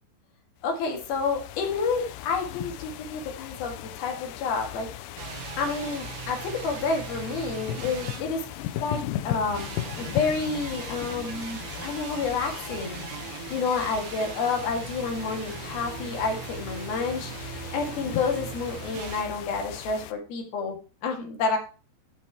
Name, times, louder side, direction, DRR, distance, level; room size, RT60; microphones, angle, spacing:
sound 1, 0.6-20.1, left 13 dB, 80° left, 2.9 m, -38 dB
voice 1, 0.6-4.9 5.6-8.5 8.8-9.7 10.0-13.0 13.3-20.8 21.0-21.6, left 4 dB, 60° left, 2 dB, 3.3 m, -29 dB
sound 2, 5.2-8.9 9.5-19.2, right 9 dB, 75° right, 3.4 m, -40 dB
12.5 x 5.9 x 4.5 m, 0.34 s
omnidirectional pair, 5.4 m